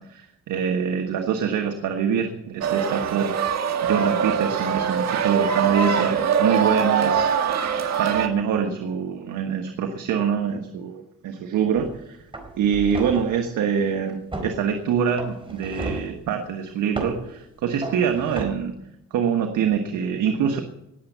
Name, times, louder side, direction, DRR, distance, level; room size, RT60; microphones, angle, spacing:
voice 1, 0.0-3.3 3.8-7.3 8.0-12.2 12.6-18.7 19.1-20.6, right 7 dB, 80° right, 5 dB, 1.5 m, -25 dB
sound 1, 2.6-8.3, right 7 dB, 60° right, 1.6 m, -23 dB
sound 2, 11.8-12.0 12.3-13.3 14.3-14.6 15.2-16.1 16.9-17.2 17.8-18.5, right 2 dB, 15° right, 4.0 m, -33 dB
19.5 x 7.3 x 8.1 m, 0.85 s
cardioid pair, 90°, 30 cm